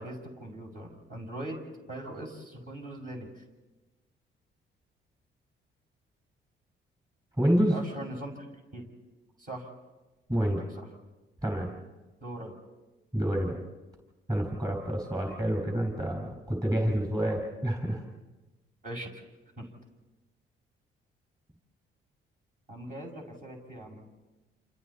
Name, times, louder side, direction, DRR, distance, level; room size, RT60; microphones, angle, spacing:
voice 1, 0.0-1.6 1.9-3.4 7.7-8.5 8.7-8.9 9.4-9.7 10.4-10.5 10.8-10.9 12.2-12.5 18.8-19.1 19.6-19.7 22.7-24.1, right 1 dB, 40° right, 0 dB, 6.4 m, -40 dB
voice 2, 7.4-7.8 10.3-10.6 11.4-11.7 13.1-13.6 14.3-18.0, equal, 20° right, 1 dB, 5.4 m, -28 dB
28.5 x 28.5 x 4.3 m, 1.1 s
cardioid pair, 90°, 20 cm